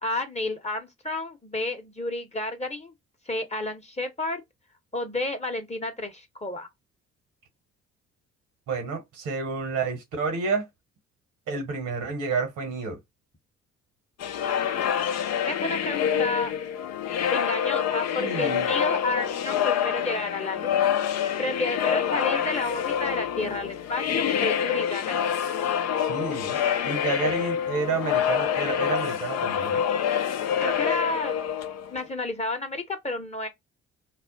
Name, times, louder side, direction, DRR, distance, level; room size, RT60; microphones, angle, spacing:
voice 1, 0.0-2.9 3.3-4.4 4.9-6.7 15.4-16.5 17.3-20.9 21.4-25.4 26.8-26.9 27.2-27.3 30.6-31.3 31.9-33.5, left 2 dB, 20° left, 0.9 m, -31 dB
voice 2, 8.7-10.7 11.5-13.0 18.2-18.7 26.0-26.6 26.8-29.8, right 4 dB, 65° right, 1.2 m, -30 dB
sound 1, 14.2-32.1, left 9 dB, 50° left, 0.5 m, -26 dB
2.4 x 2.0 x 3.8 m
hypercardioid pair, 45°, 34 cm